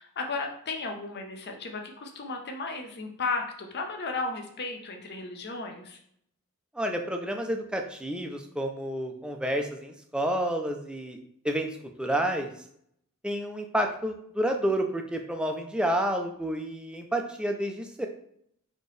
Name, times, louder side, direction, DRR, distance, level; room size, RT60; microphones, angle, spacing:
voice 1, 0.0-6.0, left 3 dB, 50° left, 3 dB, 0.7 m, -34 dB
voice 2, 6.7-11.2 11.4-11.7 12.0-12.5 13.2-18.1, right 1 dB, 5° right, 3 dB, 0.4 m, -29 dB
4.3 x 2.9 x 3.2 m, 0.69 s
head